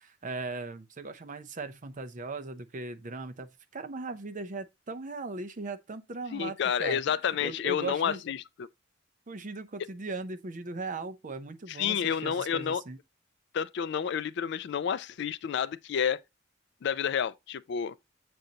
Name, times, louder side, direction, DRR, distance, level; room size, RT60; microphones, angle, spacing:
voice 1, 0.0-7.0 7.4-8.2 9.3-13.0, right 3 dB, 40° right, 0.6 m, -38 dB
voice 2, 6.3-8.7 11.7-12.8 13.5-16.2 16.8-18.0, left 8 dB, 60° left, 0.3 m, -30 dB
7.7 x 5.2 x 2.8 m
head